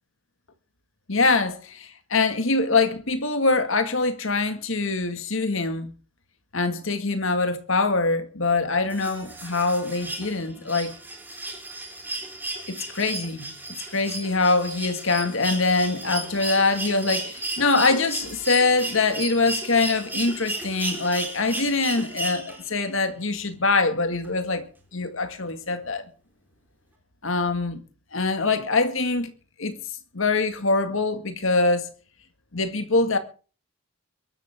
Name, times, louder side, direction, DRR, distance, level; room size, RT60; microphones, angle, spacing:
voice 1, 1.1-5.9 6.5-10.9 12.7-13.5 13.9-24.7 24.9-26.0 27.2-27.8 28.1-29.3 29.6-29.8 30.1-31.9 32.5-33.2, left 3 dB, 65° left, 2.0 m, -24 dB
sound 1, 8.9-22.8 24.2-24.3, right 2 dB, 10° right, 3.5 m, -34 dB
23.0 x 12.0 x 3.6 m
head